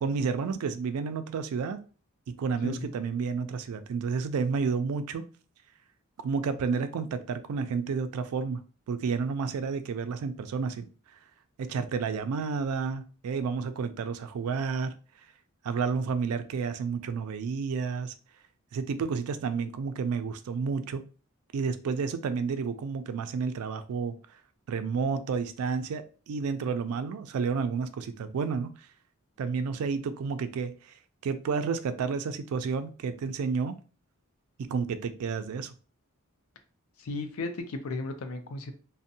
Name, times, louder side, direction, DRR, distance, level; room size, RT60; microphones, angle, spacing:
voice 1, 0.0-1.8 2.3-5.2 6.2-8.6 8.9-10.9 11.6-15.0 15.6-18.1 18.7-21.0 21.5-24.2 24.7-28.7 29.4-30.9 31.2-33.7 34.6-35.7, right 5 dB, 85° right, 10 dB, 0.3 m, -30 dB
voice 2, 37.0-38.7, left 2 dB, 75° left, 7 dB, 0.4 m, -35 dB
2.5 x 2.1 x 2.6 m, 0.37 s
head